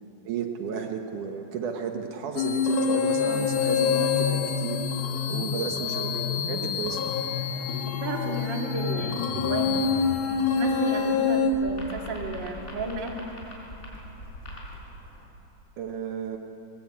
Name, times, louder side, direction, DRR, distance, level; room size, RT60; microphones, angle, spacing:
voice 1, 0.2-4.8 5.3-7.0 15.8-16.4, right 7 dB, 75° right, 4 dB, 2.7 m, -33 dB
sound 1, 2.4-11.5, left 6 dB, 75° left, 2.8 m, -26 dB
voice 2, 7.9-9.8 10.5-13.3, right 3 dB, 35° right, 1 dB, 2.6 m, -33 dB
sound 2, 9.5-15.2, left 1 dB, 20° left, 5.4 m, -43 dB
22.0 x 20.5 x 8.8 m, 2.9 s
omnidirectional pair, 3.7 m